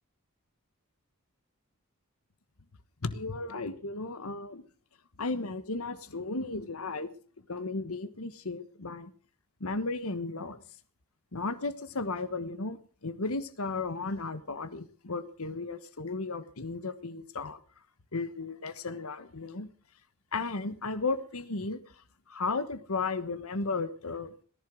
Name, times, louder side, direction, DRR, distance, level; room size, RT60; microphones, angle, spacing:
voice 1, 3.0-4.6 5.2-7.1 7.5-9.1 9.6-10.6 11.3-17.6 18.1-19.7 20.3-21.8 22.3-24.3, left 3 dB, 80° left, 12 dB, 1.3 m, -34 dB
18.0 x 11.0 x 6.2 m, 0.43 s
head